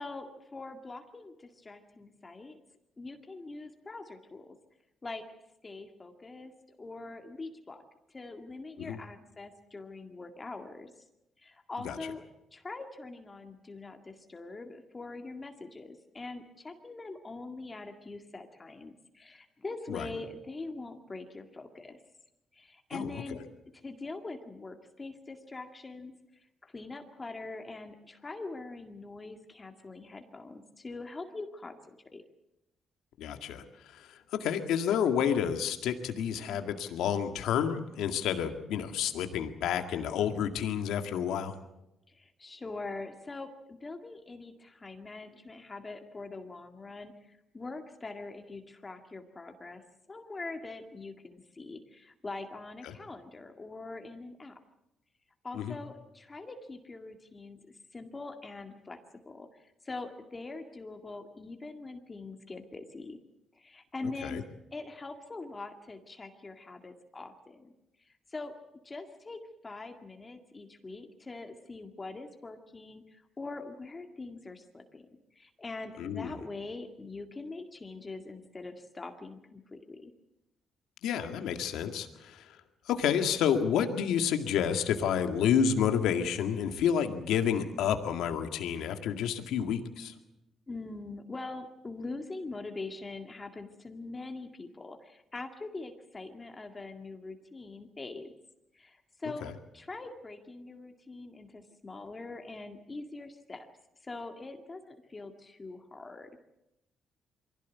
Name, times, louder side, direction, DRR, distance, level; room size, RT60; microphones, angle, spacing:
voice 1, 0.0-2.6 3.0-4.6 5.0-5.2 5.6-7.8 8.1-10.9 11.4-12.2 12.5-22.0 22.5-23.4 23.8-32.2 42.1-49.8 50.1-54.5 55.4-57.6 57.9-59.0 59.3-63.2 63.5-64.4 64.7-67.7 68.0-68.5 68.8-75.1 75.3-80.1 90.7-98.3 98.7-99.5 99.7-103.7 104.0-106.3, left 3 dB, 25° left, 5 dB, 2.0 m, -43 dB
voice 2, 22.9-23.4 33.2-41.6 52.8-52.9 55.5-55.8 64.2-64.4 76.0-76.4 81.0-82.6 82.9-90.1 99.4-99.5, left 8 dB, 85° left, 6 dB, 2.0 m, -30 dB
23.5 x 17.0 x 8.4 m, 0.91 s
cardioid pair, 90°, 0 cm